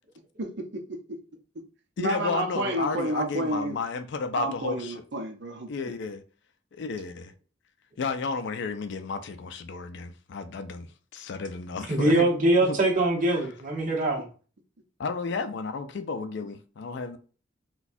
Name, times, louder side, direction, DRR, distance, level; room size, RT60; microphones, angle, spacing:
voice 1, 0.4-1.2 2.0-3.8 4.3-5.7, right 1 dB, 60° right, 0.7 m, -30 dB
voice 2, 2.0-5.0 5.7-6.2 6.7-7.3 8.0-12.3 12.7-12.8 13.4-13.5 15.0-17.2, left 4 dB, 60° left, 0.4 m, -32 dB
voice 3, 11.9-14.3, right 1 dB, 45° right, 1.0 m, -23 dB
4.0 x 2.3 x 2.6 m
head